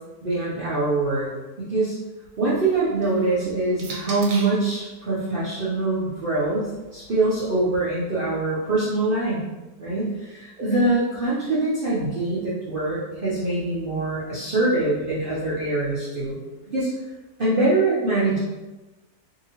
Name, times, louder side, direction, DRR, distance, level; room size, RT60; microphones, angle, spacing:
voice 1, 0.2-1.3 1.6-2.0 2.4-9.4 9.8-16.4 16.7-16.9 17.4-18.4, right 2 dB, 65° right, -9 dB, 0.5 m, -24 dB
sound 1, 2.3-4.7 5.7-7.8, right 3 dB, 85° right, 1.2 m, -42 dB
2.8 x 2.7 x 2.8 m, 1.1 s
omnidirectional pair, 1.7 m